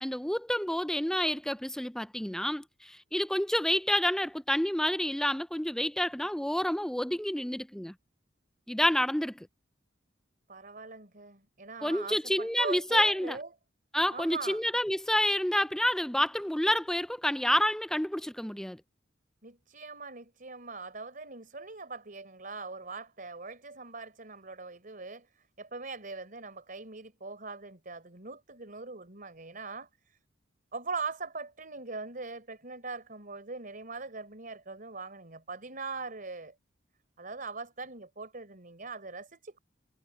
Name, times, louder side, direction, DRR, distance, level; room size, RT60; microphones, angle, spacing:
voice 1, 0.0-7.9 8.7-9.5 11.8-13.4 13.9-18.8, left 1 dB, 5° left, 0.5 m, -29 dB
voice 2, 10.5-13.5 14.1-14.6 19.4-30.2 30.7-36.5 37.2-39.6, right 4 dB, 50° right, 4.3 m, -41 dB
head